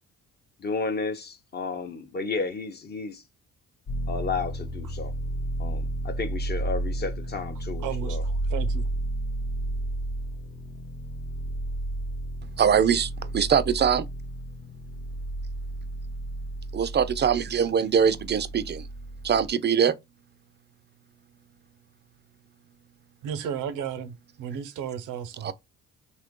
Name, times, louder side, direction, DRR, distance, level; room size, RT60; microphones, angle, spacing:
voice 1, 0.6-3.2 4.1-5.1 5.6-8.2, left 4 dB, 35° left, 0.6 m, -32 dB
sound 1, 3.9-19.5, right 1 dB, 55° left, 1.0 m, -32 dB
voice 2, 7.8-8.9 23.2-25.5, right 8 dB, 85° right, 0.6 m, -34 dB
voice 3, 12.6-14.1 16.7-18.9 19.2-19.9 25.4-25.5, right 7 dB, 35° right, 0.4 m, -22 dB
2.9 x 2.5 x 3.6 m
cardioid pair, 90°, 30 cm